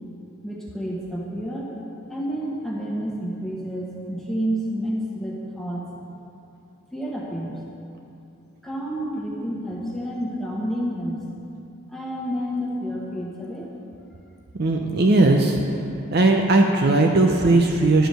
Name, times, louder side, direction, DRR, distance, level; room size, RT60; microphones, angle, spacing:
voice 1, 0.4-1.8 2.1-5.9 6.9-7.6 8.6-11.2 11.9-13.7, equal, ahead, -5 dB, 1.4 m, -29 dB
voice 2, 14.5-15.6 16.1-18.1, right 2 dB, 45° right, 2 dB, 0.6 m, -18 dB
11.5 x 5.0 x 7.7 m, 2.7 s
head